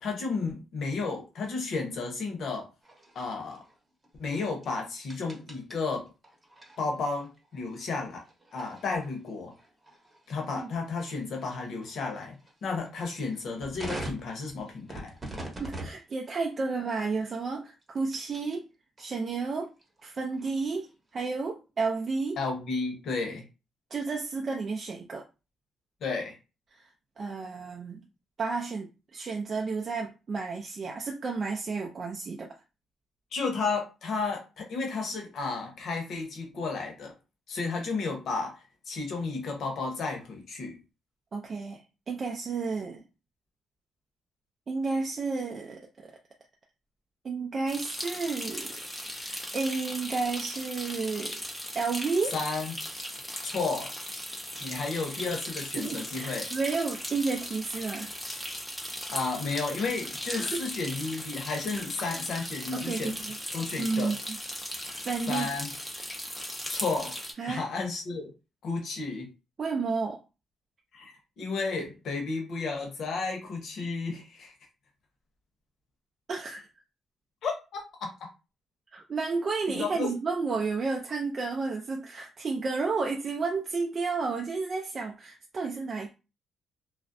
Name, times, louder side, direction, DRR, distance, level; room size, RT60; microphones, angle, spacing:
voice 1, 0.0-2.7 3.1-3.6 4.2-6.1 6.8-8.2 8.5-9.5 10.3-12.4 12.6-15.1 22.4-23.4 26.0-26.4 33.3-37.1 37.5-38.6 38.9-40.8 52.3-52.7 53.4-53.9 54.6-56.5 59.1-63.2 63.5-64.2 65.3-65.7 66.6-67.2 67.5-68.3 68.6-69.3 70.9-74.5 77.4-78.1 79.7-80.1, left 4 dB, 65° left, 0.9 m, -32 dB
sound 1, 2.8-18.6 19.0-21.1, right 1 dB, 25° right, 0.9 m, -46 dB
voice 2, 15.6-18.6 19.0-19.7 20.0-22.4 23.9-25.2 26.7-26.8 27.2-28.0 28.4-32.5 41.3-43.0 44.7-46.1 47.2-48.7 49.1-51.4 51.7-52.4 55.8-58.1 60.3-60.6 62.7-63.4 63.8-64.2 64.9-65.5 67.4-67.7 69.6-70.2 76.3-76.7 78.9-86.1, right 4 dB, 40° right, 0.4 m, -32 dB
sound 2, 47.7-67.3, equal, 10° left, 0.6 m, -38 dB
2.4 x 2.0 x 2.5 m
cardioid pair, 90°, 0 cm